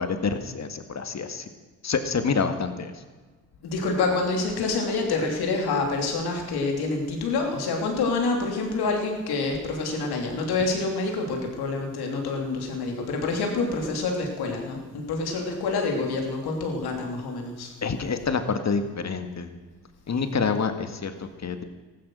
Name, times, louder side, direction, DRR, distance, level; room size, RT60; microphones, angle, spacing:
voice 1, 0.0-1.5 1.8-3.0 17.8-19.5 20.1-21.6, left 5 dB, 45° left, 8 dB, 1.9 m, -27 dB
voice 2, 3.6-17.7, left 3 dB, 75° left, 2 dB, 3.1 m, -27 dB
14.5 x 12.5 x 6.3 m, 1.3 s
supercardioid pair, 50°, 38 cm